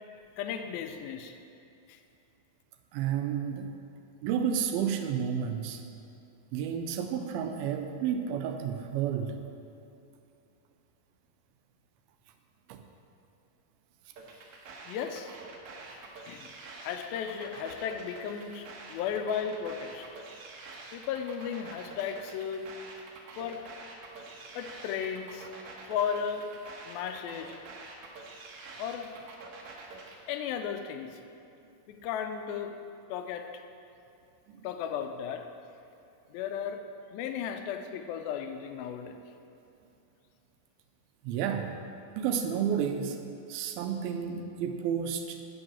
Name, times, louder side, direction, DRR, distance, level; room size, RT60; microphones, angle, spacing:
voice 1, 0.4-1.4 1.9-2.0 14.9-15.3 16.3-16.5 16.8-20.1 20.9-22.8 23.4-23.7 24.5-25.5 25.9-26.6 26.9-27.6 28.8-29.2 30.3-31.2 31.9-33.5 34.6-35.5 36.3-39.2, left 7 dB, 85° left, 7 dB, 2.3 m, -35 dB
voice 2, 2.9-3.7 4.2-5.8 6.5-9.4 12.7-12.8 15.8-15.9 34.5-34.7 41.2-41.7 42.1-43.2 43.5-45.4, right 8 dB, 85° right, 6 dB, 2.4 m, -31 dB
sound 1, 14.2-30.2, right 3 dB, 65° right, 1.9 m, -47 dB
8.7 x 5.4 x 7.2 m, 2.7 s
omnidirectional pair, 4.3 m